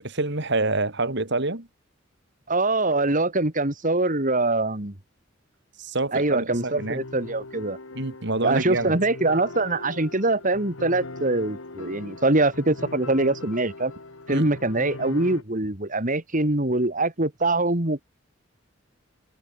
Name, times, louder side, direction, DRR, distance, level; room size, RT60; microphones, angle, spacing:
voice 1, 0.0-1.7 5.8-7.0 7.9-8.9 14.3-14.5, right 2 dB, 60° right, 3.1 m, -27 dB
voice 2, 2.5-4.9 6.1-7.8 8.4-13.9 14.3-18.0, right 2 dB, 40° right, 2.7 m, -23 dB
sound 1, 6.5-15.4, left 2 dB, 85° left, 2.1 m, -40 dB
head